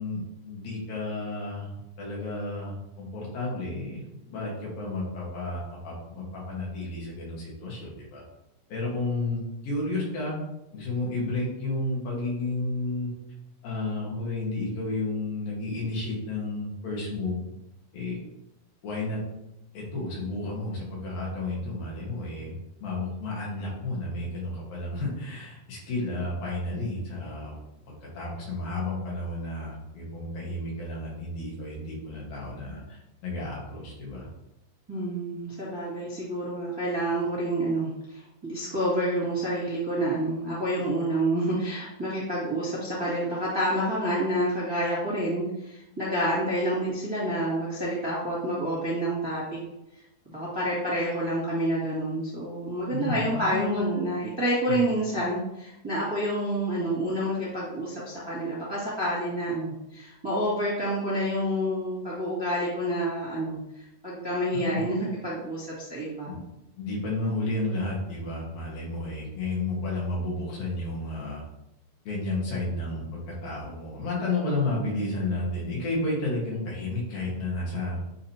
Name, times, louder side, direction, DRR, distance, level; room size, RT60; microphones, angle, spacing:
voice 1, 0.0-8.2 8.7-10.4 10.7-13.1 13.6-17.4 17.9-18.2 18.8-19.2 19.7-27.6 27.9-34.3 52.9-53.9 54.7-54.8 64.5-64.8 66.3-66.4 66.8-71.4 72.0-78.0, left 2 dB, 60° left, -5 dB, 3.2 m, -32 dB
voice 2, 34.9-49.6 50.2-63.6 64.0-66.3, right 1 dB, 15° right, -9 dB, 0.9 m, -28 dB
9.9 x 3.7 x 2.9 m, 0.88 s
omnidirectional pair, 4.8 m